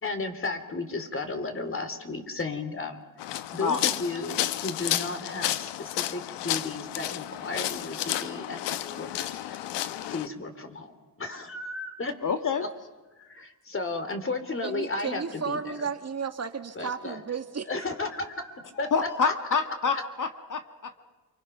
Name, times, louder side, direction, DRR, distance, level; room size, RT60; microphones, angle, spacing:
voice 1, 0.0-3.0 3.5-9.6 10.1-10.9 11.2-12.1 13.2-15.9 16.7-17.2 17.7-18.9 19.2-19.3 19.9-20.0, left 3 dB, 30° left, 8 dB, 3.5 m, -34 dB
sound 1, 3.2-10.3, left 13 dB, 85° left, 1.1 m, -32 dB
voice 2, 12.2-12.6 18.8-21.0, left 5 dB, 50° left, 7 dB, 1.7 m, -27 dB
voice 3, 14.6-17.7, right 6 dB, 40° right, 8 dB, 1.7 m, -33 dB
29.0 x 24.5 x 6.1 m, 1.2 s
cardioid pair, 75°, 41 cm